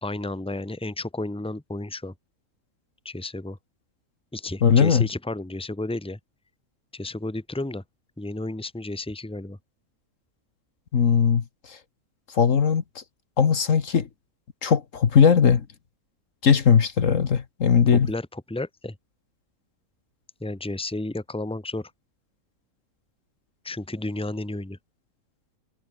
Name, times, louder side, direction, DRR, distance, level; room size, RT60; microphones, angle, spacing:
voice 1, 0.0-2.1 3.0-3.6 4.3-6.2 6.9-7.8 8.2-9.6 18.1-19.0 20.4-21.9 23.6-24.8, left 2 dB, 5° left, 1.5 m, -32 dB
voice 2, 4.6-5.1 10.9-11.8 12.3-13.0 13.4-14.1 14.6-15.7 16.4-18.1, left 6 dB, 60° left, 1.7 m, -19 dB
omnidirectional pair, 1.5 m